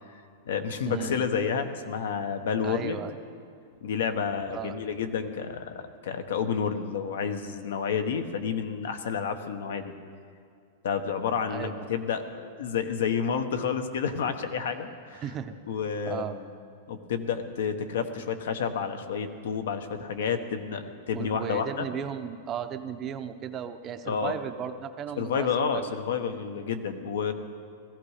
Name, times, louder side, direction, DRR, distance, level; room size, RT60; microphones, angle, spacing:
voice 1, 0.5-3.0 3.8-9.9 10.8-15.2 15.7-16.5 16.9-21.9 24.0-24.3 25.2-27.3, left 6 dB, 85° left, 8 dB, 1.2 m, -30 dB
voice 2, 2.6-3.1 4.5-4.8 11.5-11.9 15.2-15.6 16.0-16.4 21.1-25.8, right 8 dB, 20° right, 9 dB, 0.5 m, -35 dB
16.5 x 14.5 x 5.0 m, 2.3 s
supercardioid pair, 170°, 0 cm